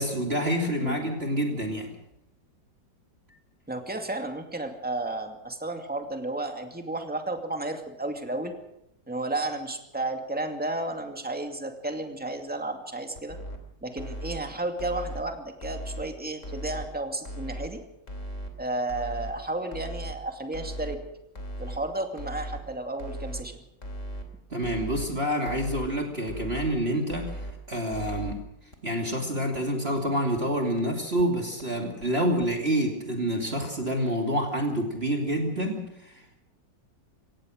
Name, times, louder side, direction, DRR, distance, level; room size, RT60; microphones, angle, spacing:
voice 1, 0.0-1.9 24.5-28.4 28.8-36.4, equal, 35° right, 2 dB, 2.9 m, -28 dB
voice 2, 3.7-8.5 9.1-13.4 13.8-17.8 18.6-21.0 21.6-23.6, right 2 dB, 5° right, 4 dB, 2.3 m, -32 dB
sound 1, 13.2-13.6 14.0-14.4 14.8-15.2 15.6-16.0 16.4-16.8 17.2-17.7 18.1-18.5 18.9-19.3 19.7-20.1 20.5-21.0 21.4-21.8 22.2-22.6 23.0-23.4 23.8-24.2 24.6-25.1 25.5-25.9 26.3-26.7 27.1-27.5 27.9-28.3 28.7-28.8 29.1-29.2 29.5-29.6 30.0-30.1 30.4-30.5 30.8-30.9 31.2-31.3 31.6-31.7 32.0-32.1 32.4-32.5, equal, 40° left, 3.3 m, -37 dB
24.0 x 18.0 x 6.4 m, 0.80 s
omnidirectional pair, 1.9 m